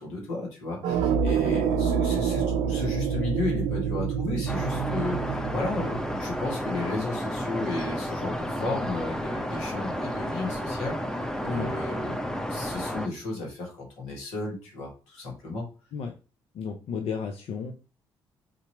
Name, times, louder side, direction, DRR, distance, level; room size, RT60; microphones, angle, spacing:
voice 1, 0.0-15.6, left 2 dB, 80° left, -2 dB, 1.8 m, -34 dB
sound 1, 0.8-6.7, right 7 dB, 80° right, 0.5 m, -27 dB
sound 2, 4.5-13.1, equal, 5° left, 0.7 m, -32 dB
voice 2, 11.4-11.7 15.9-16.1 16.5-17.7, left 6 dB, 65° left, 4 dB, 0.6 m, -33 dB
3.7 x 2.9 x 4.4 m, 0.34 s
hypercardioid pair, 50°, 11 cm